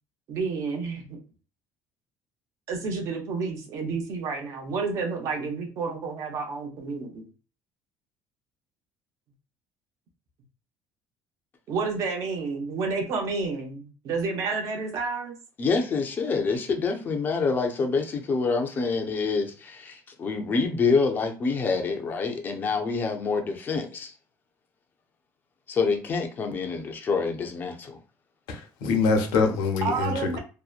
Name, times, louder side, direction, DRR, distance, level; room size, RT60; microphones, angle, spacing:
voice 1, 0.3-1.2 2.7-7.3 11.7-15.4 29.8-30.4, right 4 dB, 50° right, 0.7 m, -30 dB
voice 2, 15.6-24.1 25.7-28.0, left 4 dB, 25° left, 0.5 m, -26 dB
voice 3, 28.5-30.4, left 4 dB, 80° left, 0.7 m, -24 dB
2.7 x 2.1 x 2.3 m
cardioid pair, 165°, 7 cm